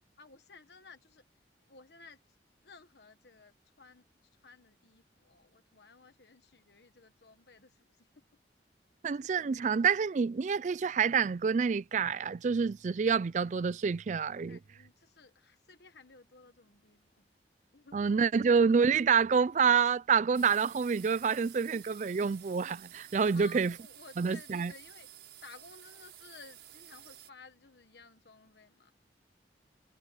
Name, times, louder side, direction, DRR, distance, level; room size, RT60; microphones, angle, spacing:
voice 1, 0.2-1.2 1.7-2.2 2.6-8.2 9.1-9.3 14.5-17.2 17.7-18.0 23.3-25.1 25.4-28.9, left 4 dB, 70° left, 1.3 m, -55 dB
voice 2, 9.0-14.6 17.9-23.7 24.2-24.7, right 6 dB, 45° right, 0.3 m, -27 dB
sound 1, 20.3-27.3, right 12 dB, 80° right, 5.5 m, -52 dB
head